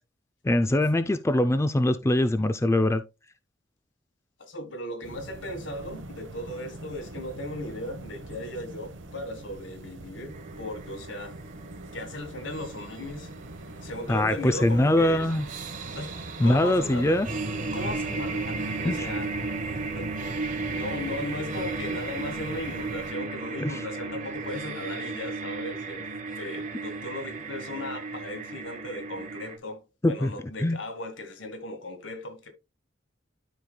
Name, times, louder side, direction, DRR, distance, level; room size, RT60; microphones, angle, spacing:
voice 1, 0.4-3.0 14.1-15.4 16.4-17.3 18.8-19.0 23.6-23.7 30.0-30.3 30.6-30.8, left 1 dB, 15° left, 0.4 m, -22 dB
voice 2, 4.4-11.4 11.9-13.3 13.8-15.3 15.9-16.1 16.4-17.2 17.7-19.3 19.9-20.1 20.7-26.1 26.4-32.5, left 1 dB, 70° left, 1.7 m, -37 dB
sound 1, 5.0-23.1, right 2 dB, 70° right, 1.0 m, -42 dB
sound 2, 10.3-29.6, right 3 dB, 45° right, 1.3 m, -35 dB
12.5 x 5.0 x 2.2 m
head